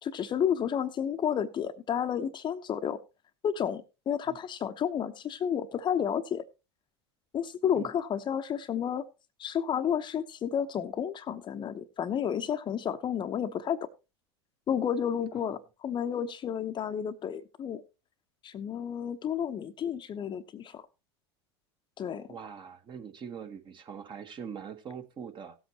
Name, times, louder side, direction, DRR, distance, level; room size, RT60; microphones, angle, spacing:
voice 1, 0.0-3.0 3.4-6.4 7.3-9.1 9.4-13.8 14.7-17.8 18.4-20.8 22.0-22.3, left 8 dB, 35° left, 0.9 m, -31 dB
voice 2, 22.3-25.6, right 7 dB, 35° right, 1.5 m, -42 dB
16.5 x 8.0 x 3.0 m
figure-of-eight pair, 80°, 14 cm